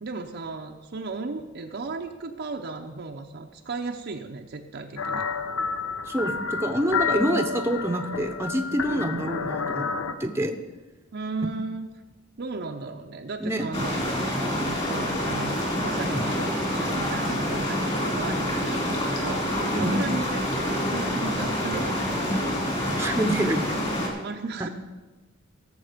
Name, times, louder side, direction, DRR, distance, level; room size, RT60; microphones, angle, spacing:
voice 1, 0.0-5.3 8.9-9.1 11.1-11.9 12.4-14.0 14.4-15.6 15.8-22.7 24.2-24.7, right 3 dB, 55° right, 2 dB, 0.7 m, -35 dB
sound 1, 5.0-10.1, left 5 dB, 80° left, 0.8 m, -29 dB
voice 2, 6.0-9.9 10.2-10.6 13.4-13.6 19.7-19.9 23.0-23.8 24.1-24.2, right 1 dB, 15° right, 5 dB, 0.8 m, -26 dB
sound 2, 13.7-24.1, equal, 30° left, 2.6 m, -27 dB
17.0 x 7.1 x 5.1 m, 1.2 s
head